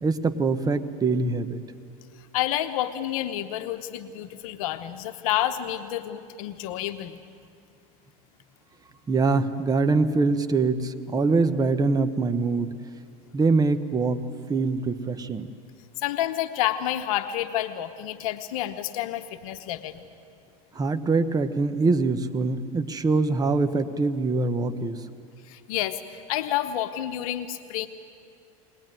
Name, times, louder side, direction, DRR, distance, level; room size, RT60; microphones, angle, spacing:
voice 1, 0.0-1.6 9.1-12.7 13.3-14.2 14.5-15.5 20.7-25.0, right 3 dB, 20° right, 9 dB, 1.2 m, -24 dB
voice 2, 2.2-7.2 16.0-20.0 25.4-27.9, left 12 dB, 80° left, 9 dB, 1.0 m, -29 dB
21.0 x 20.5 x 9.2 m, 2.3 s
supercardioid pair, 115°, 18 cm